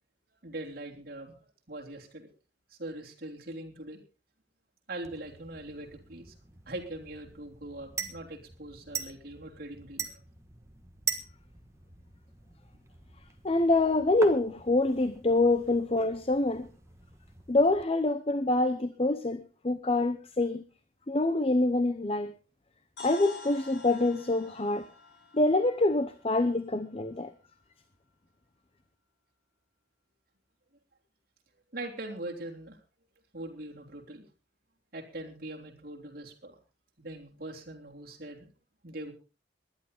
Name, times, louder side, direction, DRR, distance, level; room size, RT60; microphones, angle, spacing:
voice 1, 0.4-1.3 1.7-2.3 2.7-4.0 4.9-6.3 6.7-10.2 31.7-32.8 33.3-34.3 34.9-36.6 37.0-38.5 38.8-39.1, right 1 dB, 55° right, 3.3 m, -41 dB
sound 1, 5.0-17.8, right 5 dB, 15° right, 1.4 m, -43 dB
voice 2, 13.4-16.7 17.5-20.6 21.1-22.3 23.0-24.9 25.3-27.3, left 2 dB, 30° left, 0.8 m, -26 dB
sound 2, 23.0-26.9, left 4 dB, 80° left, 7.0 m, -48 dB
19.5 x 11.5 x 3.9 m
head